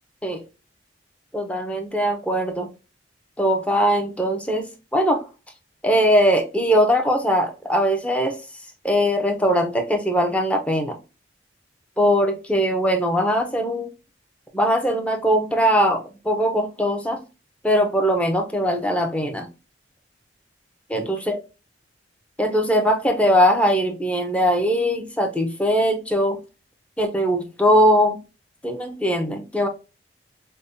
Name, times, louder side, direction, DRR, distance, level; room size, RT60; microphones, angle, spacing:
voice 1, 1.3-2.7 3.4-4.7 4.9-5.2 5.8-8.4 8.8-11.0 12.0-13.9 14.5-17.2 17.6-19.5 20.9-21.4 22.4-26.4 27.0-28.2 28.6-29.7, equal, 5° left, 0.6 m, -20 dB
5.2 x 2.1 x 2.5 m
head